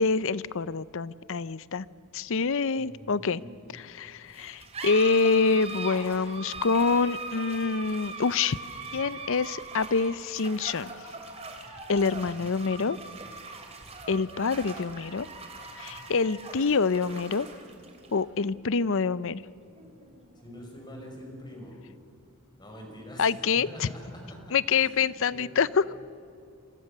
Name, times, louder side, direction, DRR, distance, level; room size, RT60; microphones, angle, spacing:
voice 1, 0.0-1.9 2.1-3.4 3.7-8.6 8.9-10.9 11.9-13.0 14.1-15.3 15.8-17.5 18.1-19.4 23.2-23.9 24.5-25.9, left 4 dB, 60° left, 18 dB, 0.6 m, -26 dB
voice 2, 2.8-3.6 12.4-13.0 15.9-16.0 20.4-21.8 22.6-25.1 25.3-25.5, equal, 20° left, 1 dB, 5.6 m, -45 dB
sound 1, 4.3-21.3, right 3 dB, 30° right, 3.1 m, -41 dB
27.0 x 25.5 x 6.7 m, 2.5 s
head